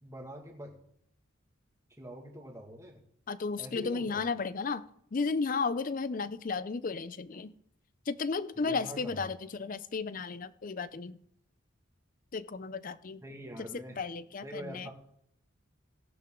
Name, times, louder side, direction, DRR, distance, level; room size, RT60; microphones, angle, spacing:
voice 1, 0.0-0.7 2.0-3.0 3.6-4.2 8.6-9.0 13.2-14.0 14.4-14.9, equal, 15° right, 1 dB, 1.9 m, -44 dB
voice 2, 3.3-7.5 8.1-11.2 12.3-13.2 13.7-14.9, left 4 dB, 40° left, 16 dB, 0.5 m, -34 dB
17.0 x 8.0 x 3.7 m, 0.73 s
head